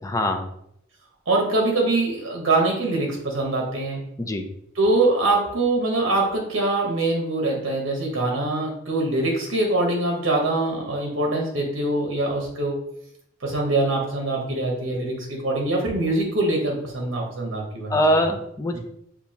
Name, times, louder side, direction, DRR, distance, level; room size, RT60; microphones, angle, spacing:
voice 1, 0.0-0.5 4.2-4.5 17.9-18.8, equal, 15° left, 4 dB, 0.4 m, -22 dB
voice 2, 1.3-4.0 4.7-12.7 13.4-18.2 18.7-18.8, right 2 dB, 75° right, 0 dB, 1.0 m, -23 dB
6.8 x 2.3 x 2.8 m, 0.75 s
head